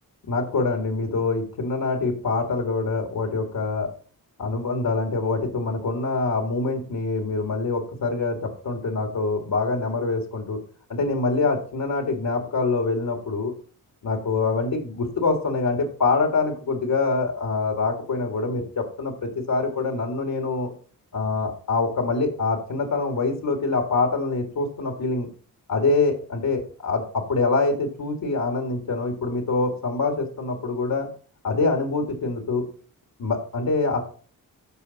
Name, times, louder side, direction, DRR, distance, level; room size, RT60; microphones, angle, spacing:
voice 1, 0.3-3.9 4.4-10.6 10.9-13.5 14.0-20.7 21.1-25.3 25.7-31.1 31.4-32.7 33.2-34.0, left 3 dB, 80° left, 4 dB, 2.0 m, -25 dB
14.0 x 4.8 x 4.1 m, 0.41 s
wide cardioid pair, 95°, 35 cm